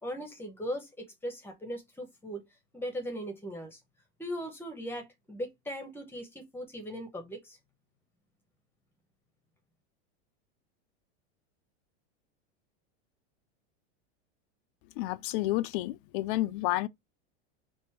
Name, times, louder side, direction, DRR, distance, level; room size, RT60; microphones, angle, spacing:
voice 1, 0.0-2.4 2.7-3.8 4.2-7.6, equal, 5° left, 1.0 m, -39 dB
voice 2, 15.0-16.9, left 17 dB, 55° left, 0.4 m, -30 dB
3.3 x 2.6 x 4.4 m
supercardioid pair, 145°, 33 cm